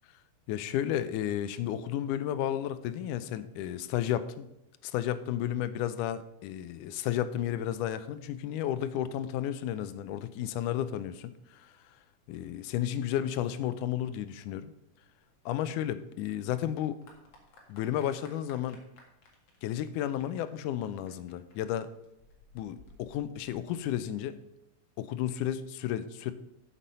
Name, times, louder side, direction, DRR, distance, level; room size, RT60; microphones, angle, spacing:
voice 1, 0.5-4.5 4.8-11.7 12.3-14.7 15.5-17.0 17.7-18.8 19.6-21.9 22.6-24.4 25.0-26.3, left 11 dB, 85° left, 13 dB, 2.1 m, -32 dB
Clapping / Applause, 15.2-24.2, left 3 dB, 50° left, 2.6 m, -59 dB
8.3 x 7.6 x 5.3 m, 0.84 s
omnidirectional pair, 3.7 m